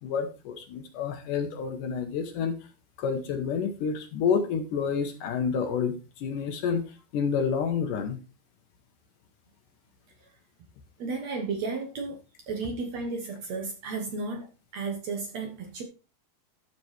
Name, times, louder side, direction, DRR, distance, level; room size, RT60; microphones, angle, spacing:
voice 1, 0.0-2.6 3.0-6.9 7.1-8.2 11.0-11.2, left 6 dB, 70° left, 7 dB, 2.3 m, -29 dB
voice 2, 11.0-12.2 12.5-14.5 14.7-15.8, right 4 dB, 60° right, 4 dB, 1.9 m, -33 dB
12.0 x 7.0 x 3.2 m, 0.30 s
omnidirectional pair, 4.2 m